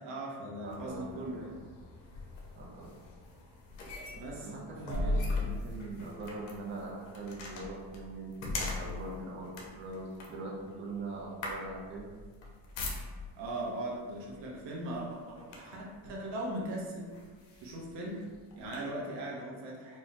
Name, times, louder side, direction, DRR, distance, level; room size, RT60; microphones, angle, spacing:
voice 1, 0.0-1.5 4.1-4.5 4.9-5.2 13.4-17.1 17.6-18.2 18.6-20.0, right 1 dB, 70° right, -3 dB, 1.1 m, -39 dB
sound 1, 0.6-13.5 14.3-14.5 14.9-15.9 16.6-16.7 17.1-18.8, left 2 dB, 85° left, 0.9 m, -39 dB
voice 2, 0.6-1.5 2.6-2.9 4.4-12.1, right 2 dB, 25° right, -4 dB, 0.7 m, -42 dB
4.3 x 2.3 x 3.2 m, 1.5 s
cardioid pair, 125°, 43 cm